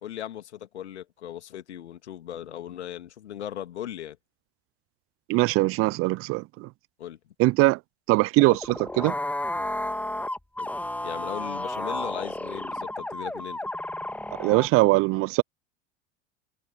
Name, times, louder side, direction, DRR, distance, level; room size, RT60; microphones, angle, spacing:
voice 1, 0.0-4.2 7.0-7.2 10.6-10.7 11.0-13.6, left 11 dB, 70° left, 2.5 m, -38 dB
voice 2, 5.3-6.7 7.4-7.8 8.1-9.1 14.4-15.4, right 22 dB, 40° right, 0.7 m, -21 dB
sound 1, 8.4-14.7, left 1 dB, 5° left, 2.0 m, -32 dB
figure-of-eight pair, 75°, 35 cm